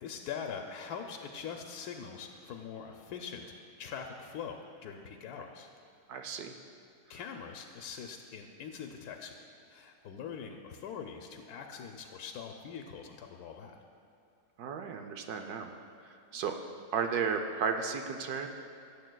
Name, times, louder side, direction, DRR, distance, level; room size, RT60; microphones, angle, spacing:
voice 1, 0.0-3.5 3.8-5.7 7.1-9.4 9.7-13.8, left 7 dB, 80° left, 3 dB, 1.1 m, -43 dB
voice 2, 6.1-6.5 14.6-15.7 16.3-16.5 16.9-18.5, right 6 dB, 75° right, 5 dB, 1.1 m, -33 dB
18.0 x 7.9 x 2.2 m, 2.6 s
omnidirectional pair, 1.7 m